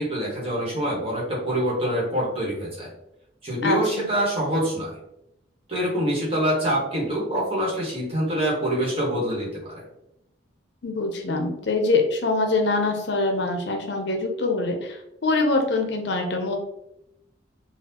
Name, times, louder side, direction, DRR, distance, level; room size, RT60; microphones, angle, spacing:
voice 1, 0.0-2.9 3.4-5.0 5.7-9.8, right 1 dB, 30° right, -5 dB, 1.4 m, -25 dB
voice 2, 3.6-4.1 10.8-16.5, left 3 dB, 65° left, 3 dB, 0.6 m, -24 dB
4.0 x 2.4 x 2.8 m, 0.83 s
head